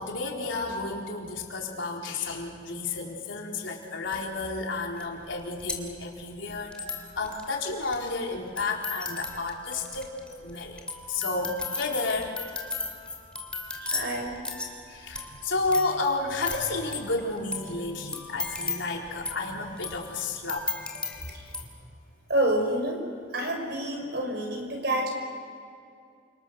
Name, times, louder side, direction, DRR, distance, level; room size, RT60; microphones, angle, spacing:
voice 1, 0.0-10.1 10.4-10.8 11.1-12.3 14.9-21.3, left 3 dB, 80° left, -1 dB, 4.2 m, -31 dB
sound 1, 4.1-4.2 5.0-5.1 5.3-21.6, left 3 dB, 5° left, 2.8 m, -37 dB
voice 2, 13.8-14.4 15.2-15.3 21.3-21.5 22.3-25.1, right 1 dB, 55° right, 3 dB, 5.6 m, -28 dB
29.5 x 27.0 x 6.5 m, 2.3 s
head